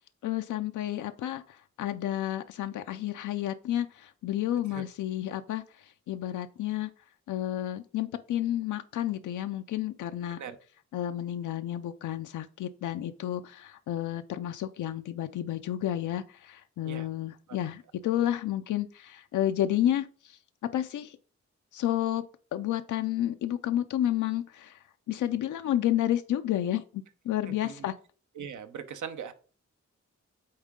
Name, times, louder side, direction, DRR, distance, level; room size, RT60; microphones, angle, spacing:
voice 1, 0.2-6.9 7.3-10.4 10.9-20.4 20.7-21.2 21.7-22.2 22.5-24.8 25.1-27.9, left 12 dB, 90° left, 8 dB, 0.5 m, -31 dB
voice 2, 27.5-27.8 28.4-29.3, right 7 dB, 80° right, 10 dB, 0.8 m, -40 dB
8.6 x 3.6 x 3.7 m, 0.39 s
cardioid pair, 80°, 29 cm